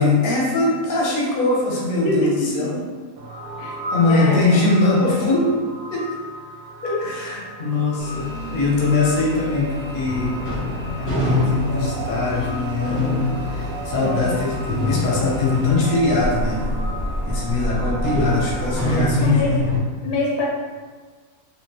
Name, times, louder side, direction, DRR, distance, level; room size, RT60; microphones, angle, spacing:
voice 1, 0.0-2.8 3.9-5.5 5.9-6.0 6.8-9.7 9.9-10.3 11.0-13.2 13.5-16.6 17.2-19.6, left 3 dB, 45° left, -4 dB, 0.8 m, -21 dB
voice 2, 2.0-2.9 3.6-4.8 14.0-14.4 19.2-19.5 20.0-20.5, left 2 dB, 80° left, -2 dB, 1.2 m, -25 dB
sound 1, 3.2-18.9, right 2 dB, 70° right, 1.0 m, -34 dB
sound 2, 8.0-15.7, left 3 dB, 10° right, 0.9 m, -37 dB
sound 3, 10.0-19.8, equal, 10° left, 0.6 m, -26 dB
3.5 x 2.8 x 2.9 m, 1.5 s
omnidirectional pair, 1.7 m